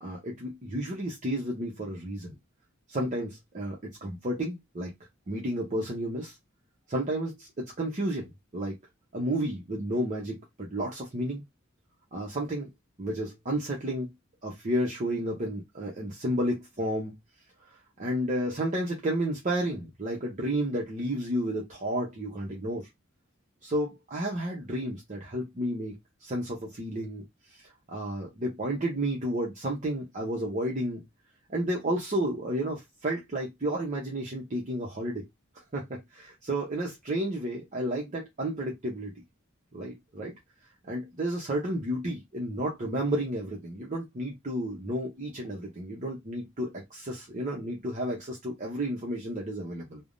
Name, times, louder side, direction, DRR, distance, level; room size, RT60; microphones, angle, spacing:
voice 1, 0.0-2.4 2.9-4.9 5.3-6.3 6.9-8.7 9.1-11.4 12.1-12.7 13.0-14.1 14.4-17.1 18.0-22.8 23.6-25.9 26.2-27.2 27.5-31.0 31.5-35.3 35.7-39.1 39.7-40.3 40.8-50.0, right 1 dB, 35° right, 0.7 m, -32 dB
3.3 x 2.1 x 2.5 m
head